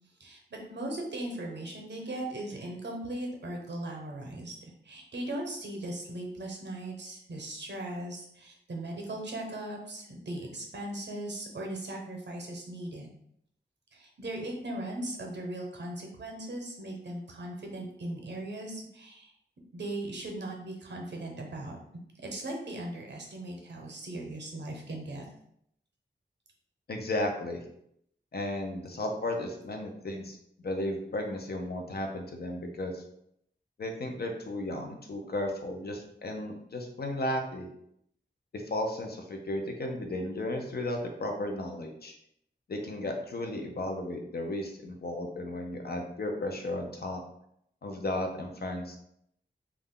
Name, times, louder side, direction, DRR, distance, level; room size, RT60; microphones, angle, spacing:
voice 1, 0.2-4.5 4.8-13.1 13.9-19.3 19.7-21.8 22.2-25.2, right 1 dB, 70° right, 1 dB, 0.7 m, -38 dB
voice 2, 26.9-27.6 28.3-30.4 30.6-33.0 33.8-37.7 38.5-42.1 42.7-47.2 47.8-49.0, left 1 dB, 55° left, 3 dB, 0.5 m, -34 dB
2.4 x 2.1 x 3.6 m, 0.73 s
wide cardioid pair, 90°, 19 cm